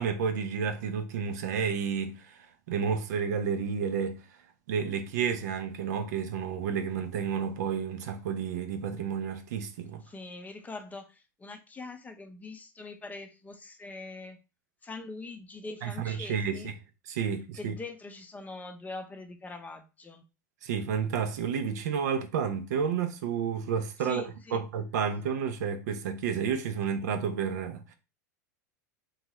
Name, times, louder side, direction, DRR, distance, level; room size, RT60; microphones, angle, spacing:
voice 1, 0.0-4.2 4.7-10.0 15.8-16.7 17.1-17.7 20.6-24.2 24.5-27.9, right 7 dB, 65° right, 0.5 m, -31 dB
voice 2, 10.0-14.4 14.8-16.7 17.5-20.2 24.0-24.6, left 3 dB, 15° left, 0.5 m, -43 dB
2.7 x 2.3 x 3.0 m
hypercardioid pair, 90°, 10 cm